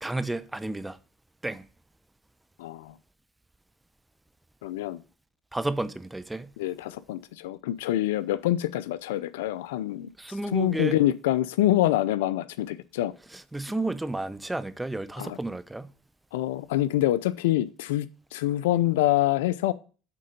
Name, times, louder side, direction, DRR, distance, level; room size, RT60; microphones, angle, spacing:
voice 1, 0.0-1.0 1.4-1.7 5.5-6.5 10.2-10.9 13.5-15.9, right 2 dB, 10° right, 0.6 m, -31 dB
voice 2, 2.6-3.0 4.6-5.0 6.6-10.1 10.5-13.1 15.2-15.4 16.3-18.1 18.3-19.7, left 14 dB, 85° left, 0.4 m, -26 dB
8.4 x 3.8 x 5.1 m
supercardioid pair, 90°, 0 cm